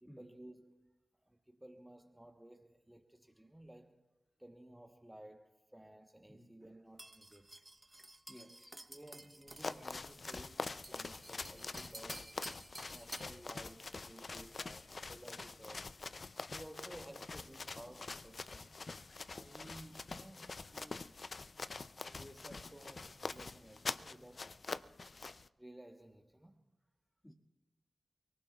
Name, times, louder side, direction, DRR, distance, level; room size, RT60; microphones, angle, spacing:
voice 1, 0.0-1.0 1.2-4.0 4.4-7.5 8.9-12.4 12.9-16.0 16.3-18.8 19.3-21.3 22.2-24.5 25.6-26.6, right 1 dB, 15° right, 1.2 m, -56 dB
sound 1, 7.0-13.4, right 2 dB, 30° right, 1.0 m, -53 dB
voice 2, 8.3-8.9 27.2-27.3, equal, 20° left, 2.1 m, -57 dB
sound 2, 9.5-25.5, left 3 dB, 55° left, 0.5 m, -45 dB
29.5 x 18.5 x 2.4 m
cardioid pair, 40°, 0 cm